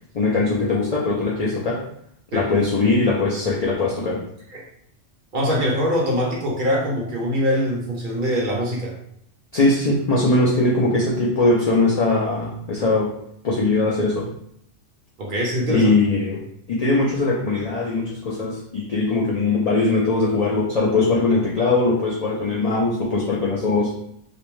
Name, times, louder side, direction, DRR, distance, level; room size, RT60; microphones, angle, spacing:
voice 1, 0.1-1.8 2.3-4.2 9.5-13.1 13.4-14.3 15.7-16.4 16.7-23.9, left 3 dB, 80° left, -4 dB, 0.3 m, -20 dB
voice 2, 5.3-8.9 15.2-15.9, equal, 55° right, -3 dB, 0.6 m, -23 dB
2.5 x 2.1 x 3.0 m, 0.71 s
omnidirectional pair, 1.2 m